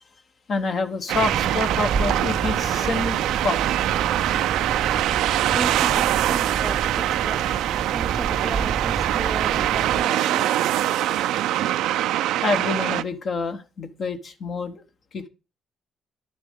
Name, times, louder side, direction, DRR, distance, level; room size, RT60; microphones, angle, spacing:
voice 1, 0.5-3.2 3.4-3.6 12.4-14.8 15.1-15.3, left 3 dB, 55° left, 1.1 m, -27 dB
sound 1, 1.1-10.0, right 5 dB, 45° right, 0.7 m, -30 dB
sound 2, 1.1-13.0, right 13 dB, 90° right, 0.4 m, -23 dB
voice 2, 5.0-11.3, right 1 dB, 10° right, 0.6 m, -36 dB
10.5 x 6.8 x 3.6 m
cardioid pair, 90°, 0 cm